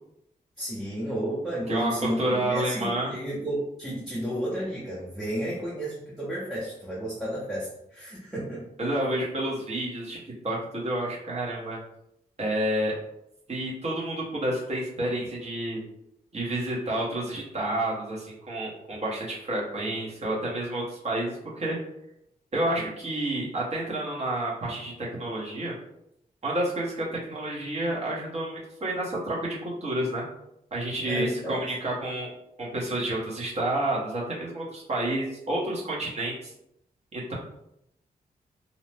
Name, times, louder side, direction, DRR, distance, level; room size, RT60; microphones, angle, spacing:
voice 1, 0.6-8.7 31.1-31.6, right 1 dB, ahead, -8 dB, 0.6 m, -32 dB
voice 2, 1.7-3.1 8.8-11.8 12.4-13.0 13.5-15.8 16.3-21.8 22.5-25.7 26.4-30.2 30.7-32.3 32.6-36.5 37.1-37.3, right 1 dB, 45° right, -5 dB, 0.9 m, -29 dB
2.7 x 2.0 x 3.2 m, 0.80 s
wide cardioid pair, 110°, 15 cm